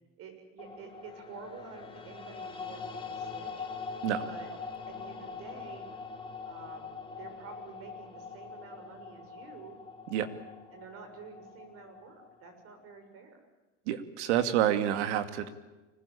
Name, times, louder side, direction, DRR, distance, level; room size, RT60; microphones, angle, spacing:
voice 1, 0.2-3.7 4.2-4.5 4.9-5.9 6.5-9.8 10.7-13.4, right 5 dB, 40° right, 6 dB, 7.1 m, -49 dB
sound 1, 0.6-12.8, left 4 dB, 15° left, 3.0 m, -43 dB
voice 2, 13.9-15.5, right 11 dB, 70° right, 9 dB, 2.6 m, -28 dB
25.0 x 20.5 x 8.7 m, 1.1 s
supercardioid pair, 145°, 35 cm